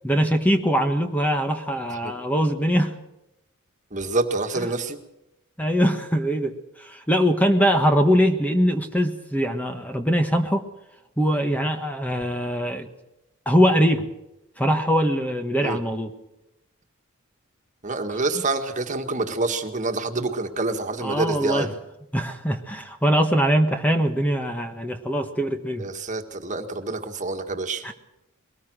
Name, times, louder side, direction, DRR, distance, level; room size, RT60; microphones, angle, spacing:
voice 1, 0.0-2.9 5.6-10.6 11.2-12.9 13.4-14.1 14.6-16.1 21.0-21.7 22.1-25.8 27.8-27.9, equal, 5° left, 6 dB, 1.4 m, -22 dB
voice 2, 3.9-5.0 15.6-15.8 17.8-21.8 25.8-27.9, right 3 dB, 35° right, 5 dB, 1.9 m, -27 dB
22.5 x 19.0 x 6.4 m, 0.90 s
head